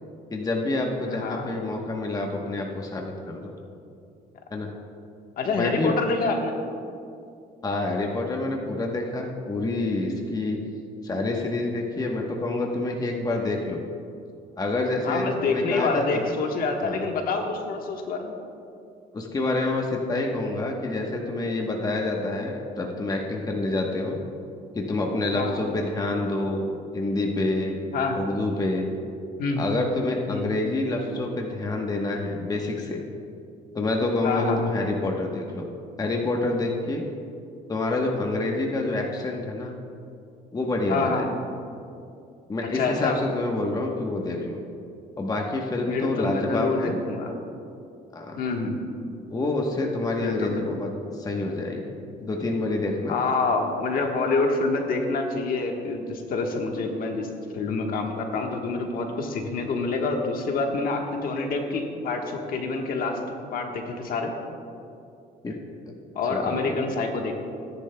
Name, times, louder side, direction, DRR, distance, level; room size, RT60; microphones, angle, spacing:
voice 1, 0.3-3.5 4.5-4.7 5.5-6.0 7.6-10.6 11.0-13.8 14.6-16.3 16.8-17.0 19.1-24.2 24.7-27.8 28.1-28.9 29.6-33.0 33.7-35.7 36.0-37.0 37.7-39.7 40.5-41.2 42.5-44.6 45.2-46.9 48.1-48.4 49.3-51.9 52.2-53.2 65.4-65.5 65.9-66.0 66.3-66.8, left 2 dB, 20° left, 0 dB, 1.1 m, -27 dB
voice 2, 1.1-1.4 5.4-6.5 15.0-18.3 25.3-25.6 27.9-28.2 29.4-29.7 30.3-30.5 34.2-34.7 40.9-41.3 42.7-43.2 45.9-47.3 48.4-48.8 50.2-50.7 53.1-57.3 57.5-63.2 63.5-64.3 66.1-67.4, left 3 dB, 60° left, 2 dB, 1.3 m, -27 dB
17.5 x 10.5 x 2.3 m, 2.5 s
cardioid pair, 110°, 17 cm